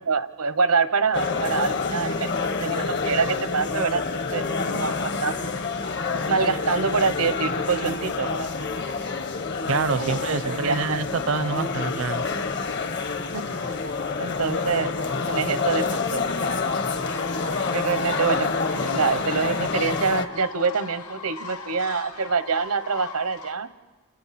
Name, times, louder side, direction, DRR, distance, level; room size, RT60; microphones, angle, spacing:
voice 1, 0.0-4.5 4.7-5.3 6.3-8.5 9.9-11.0 13.3-13.5 14.2-14.9 15.3-16.2 17.7-23.7, right 5 dB, 90° right, 12 dB, 1.0 m, -26 dB
sound 1, 1.1-20.3, left 4 dB, 50° left, 1.2 m, -27 dB
voice 2, 9.7-12.3, right 4 dB, 65° right, 14 dB, 0.6 m, -26 dB
sound 2, 16.5-23.5, left 4 dB, 85° left, 2.2 m, -38 dB
29.5 x 28.5 x 4.3 m, 1.3 s
head